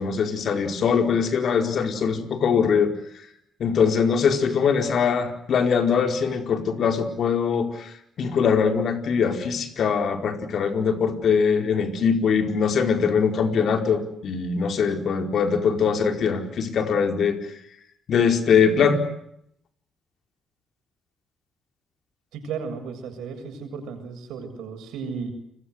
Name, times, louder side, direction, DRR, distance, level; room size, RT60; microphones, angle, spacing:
voice 1, 0.0-2.9 3.6-7.9 8.2-17.4 18.1-19.0, left 6 dB, 60° left, 5 dB, 4.7 m, -22 dB
voice 2, 22.3-25.3, right 5 dB, 85° right, 7 dB, 7.4 m, -34 dB
30.0 x 22.5 x 8.0 m, 0.74 s
cardioid pair, 90°, 0 cm